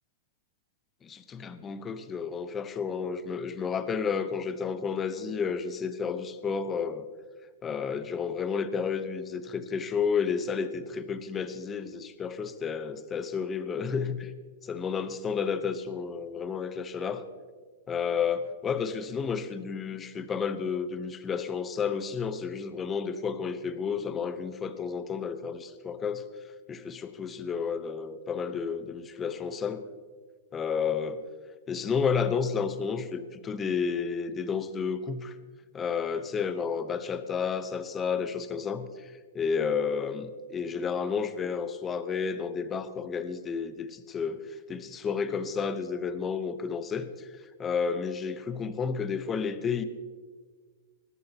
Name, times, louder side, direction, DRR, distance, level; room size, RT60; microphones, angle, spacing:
voice 1, 1.0-7.1 7.6-14.3 14.6-17.2 17.9-26.2 26.7-29.8 30.5-31.2 31.7-35.4 35.7-49.8, left 6 dB, 20° left, 10 dB, 0.8 m, -31 dB
22.0 x 11.0 x 2.9 m, 1.5 s
hypercardioid pair, 130°, 0 cm